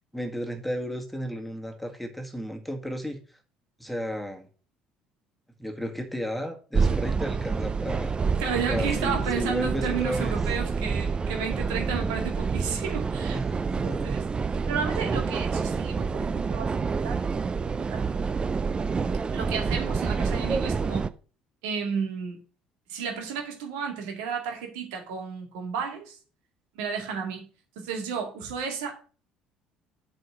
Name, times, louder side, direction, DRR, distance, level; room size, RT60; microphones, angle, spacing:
voice 1, 0.1-3.2 3.8-4.5 5.6-8.4 8.7-10.4 13.3-14.1, equal, ahead, 1.8 m, -33 dB
sound 1, 6.7-21.1, right 5 dB, 30° right, 0.5 m, -28 dB
voice 2, 8.4-13.4 13.8-14.2 14.7-17.2 17.6-18.1 19.3-21.1 21.6-22.4 22.9-26.2 26.8-27.5 27.8-28.9, right 6 dB, 75° right, 2.1 m, -32 dB
7.7 x 4.2 x 6.3 m
hypercardioid pair, 60°, 3 cm